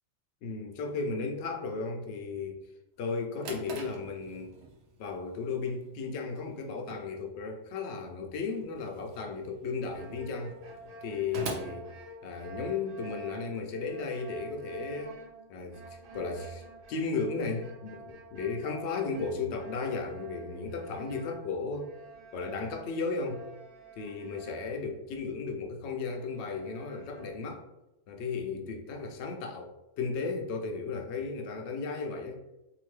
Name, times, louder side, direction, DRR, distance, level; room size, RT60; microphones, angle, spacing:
voice 1, 0.4-2.6 3.0-4.5 5.0-10.5 11.0-11.9 12.2-15.1 15.5-21.9 22.3-23.4 23.9-27.6 28.1-29.7 30.0-32.4, left 4 dB, 70° left, 3 dB, 0.8 m, -35 dB
Drawer open or close, 3.3-12.8, right 3 dB, 65° right, 0.8 m, -46 dB
sound 1, 9.9-25.3 25.6-25.7 26.1-27.3, right 2 dB, 90° right, 1.1 m, -49 dB
2.8 x 2.5 x 3.1 m, 0.93 s
omnidirectional pair, 1.3 m